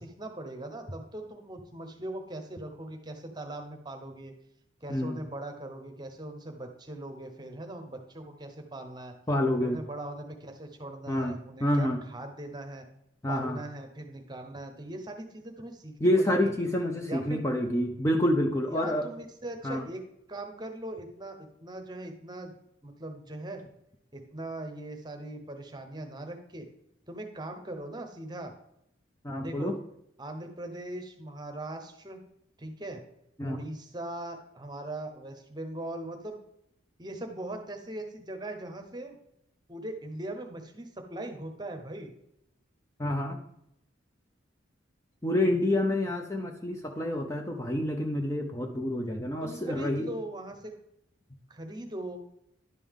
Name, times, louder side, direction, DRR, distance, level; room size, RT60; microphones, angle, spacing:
voice 1, 0.0-4.3 4.8-9.1 9.6-12.8 13.3-16.5 17.1-17.4 18.7-20.0 20.3-22.5 22.8-23.6 24.1-26.7 27.1-28.5 29.4-29.7 30.2-32.2 32.6-33.0 33.4-36.4 37.0-39.2 39.7-42.1 49.4-50.7 51.5-52.2, right 1 dB, 20° right, 4 dB, 0.9 m, -40 dB
voice 2, 9.3-9.8 11.1-12.0 13.2-13.6 16.0-19.1 19.6-19.9 29.2-29.8 33.4-33.6 43.0-43.4 45.2-50.1, left 1 dB, 15° left, 3 dB, 0.5 m, -28 dB
11.0 x 5.4 x 3.6 m, 0.77 s
head